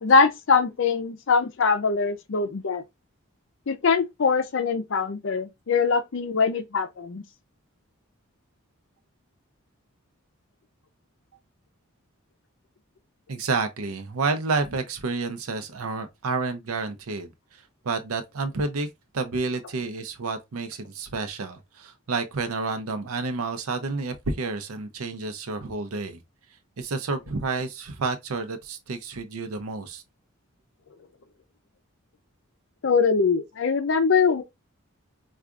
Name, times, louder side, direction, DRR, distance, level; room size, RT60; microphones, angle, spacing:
voice 1, 0.0-2.8 3.7-7.2 32.8-34.4, left 5 dB, 60° left, 0.5 m, -22 dB
voice 2, 13.3-18.9 19.1-26.2 26.8-30.0, right 3 dB, 90° right, 0.6 m, -30 dB
4.6 x 2.4 x 2.4 m
head